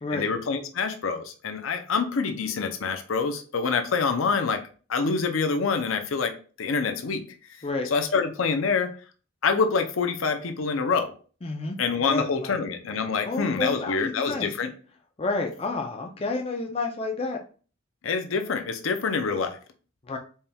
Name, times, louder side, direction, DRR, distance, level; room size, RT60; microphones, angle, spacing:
voice 1, 0.1-4.6 4.9-6.3 6.6-7.2 7.9-8.9 9.4-11.1 11.8-14.7 18.0-19.6, left 5 dB, 80° left, 6 dB, 0.6 m, -26 dB
voice 2, 11.4-11.8 12.1-12.6 13.2-14.5 15.2-17.4 20.1-20.2, left 3 dB, 30° left, 2 dB, 0.5 m, -30 dB
4.2 x 3.4 x 2.3 m, 0.38 s
head